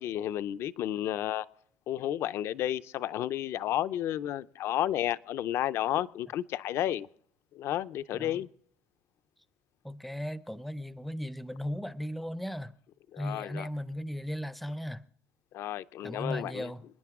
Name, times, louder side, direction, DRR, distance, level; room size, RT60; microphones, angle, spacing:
voice 1, 0.0-1.5 1.9-7.1 7.5-8.5 13.1-13.7 15.5-16.7, left 12 dB, 50° left, 0.5 m, -32 dB
voice 2, 9.8-12.7 13.2-15.0 16.0-16.8, equal, ahead, 0.5 m, -36 dB
27.5 x 10.0 x 3.6 m
cardioid pair, 150°, 5 cm